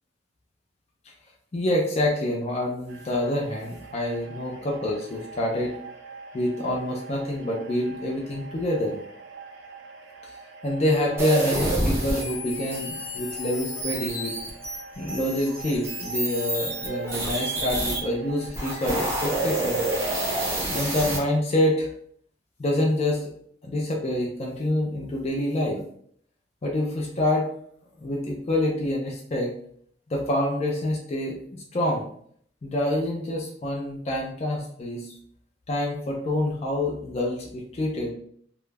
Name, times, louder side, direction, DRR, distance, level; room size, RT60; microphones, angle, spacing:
voice 1, 1.5-5.8 6.3-9.0 10.6-14.4 15.0-19.8 20.7-21.9 22.6-23.3 23.7-25.8 26.6-27.5 28.0-29.5 30.1-32.0 32.6-35.1 35.7-38.1, left 1 dB, 35° left, -1 dB, 0.4 m, -27 dB
sound 1, 2.9-21.0, right 4 dB, 75° right, 0.4 m, -44 dB
sound 2, 11.2-18.0 18.5-21.2, right 1 dB, 15° right, 0.6 m, -28 dB
2.3 x 2.1 x 3.2 m, 0.63 s
head